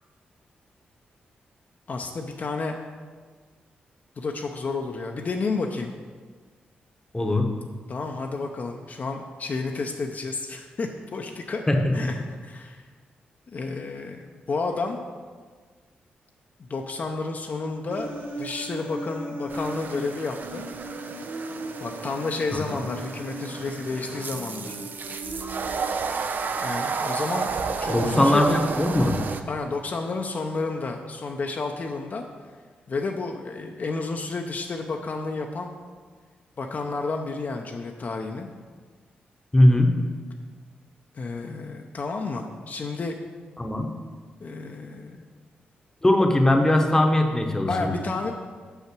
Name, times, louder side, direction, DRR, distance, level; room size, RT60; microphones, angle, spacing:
voice 1, 1.9-2.7 4.2-5.9 7.9-11.6 11.9-12.8 13.5-15.0 16.7-20.6 21.8-24.8 26.6-27.5 27.8-28.6 29.5-32.2 32.9-35.8 36.6-38.5 41.1-43.2 44.4-45.2 47.7-48.3, left 3 dB, 50° left, 3 dB, 0.6 m, -31 dB
voice 2, 7.1-7.5 11.7-11.9 22.7-22.8 27.9-29.2 39.5-39.9 43.6-43.9 46.0-47.9, left 1 dB, 15° left, 4 dB, 0.9 m, -20 dB
Human voice, 17.9-25.9, right 1 dB, 80° right, 1.2 m, -38 dB
Hose Waters, 19.5-29.4, right 5 dB, 60° right, 0.5 m, -32 dB
5.8 x 5.6 x 6.0 m, 1.5 s
cardioid pair, 70°, 4 cm